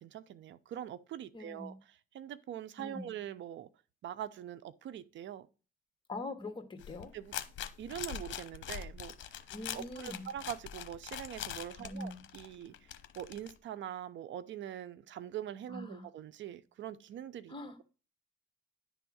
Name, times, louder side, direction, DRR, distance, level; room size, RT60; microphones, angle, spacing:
voice 1, 0.0-3.7 4.0-5.5 7.1-7.3 7.8-9.4 9.7-12.9 13.2-17.5, right 10 dB, 70° right, 0.6 m, -43 dB
voice 2, 1.3-1.8 2.8-3.1 6.1-7.1 9.5-10.3 11.8-12.2 15.7-16.1 17.5-17.8, left 2 dB, 25° left, 1.8 m, -43 dB
sound 1, 6.8-13.5, left 10 dB, 75° left, 0.9 m, -43 dB
10.5 x 3.6 x 6.1 m
cardioid pair, 90°, 20 cm